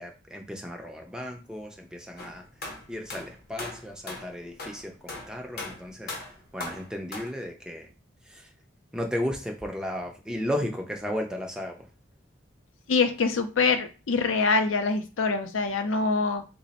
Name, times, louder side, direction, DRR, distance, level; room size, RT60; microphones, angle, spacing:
voice 1, 0.0-2.4 2.9-6.2 6.5-7.9 8.2-8.5 8.9-11.9, equal, 5° right, 2 dB, 0.4 m, -34 dB
sound 1, 2.2-7.3, left 2 dB, 50° left, 0.7 m, -38 dB
voice 2, 12.9-16.5, left 4 dB, 85° left, 7 dB, 0.5 m, -24 dB
3.2 x 2.0 x 4.0 m, 0.32 s
head